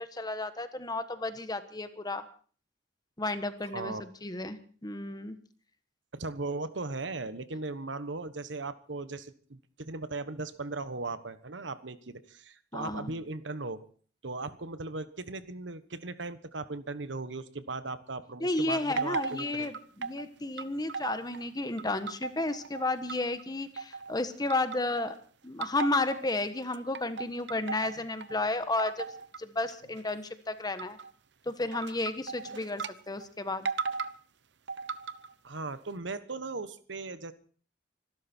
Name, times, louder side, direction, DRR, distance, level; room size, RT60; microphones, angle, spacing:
voice 1, 0.0-2.2 3.2-5.4 12.7-13.2 18.4-25.2 25.4-29.1 29.4-31.0 31.5-33.7, left 2 dB, 20° left, 10 dB, 1.3 m, -32 dB
voice 2, 3.6-4.0 6.1-13.8 14.2-19.7 32.5-32.7 35.4-37.3, right 3 dB, 85° right, 13 dB, 1.3 m, -38 dB
sound 1, 19.0-20.2 20.6-21.5 21.8-23.4 23.8-24.2 24.5-25.2 25.6-26.4 26.7-28.4 28.8-29.4 29.7-30.0 30.8-31.1 31.7-32.9 33.2-33.3 33.7-34.2 34.7-35.3, right 5 dB, 70° right, 0.8 m, -37 dB
25.5 x 12.5 x 4.5 m, 0.43 s
head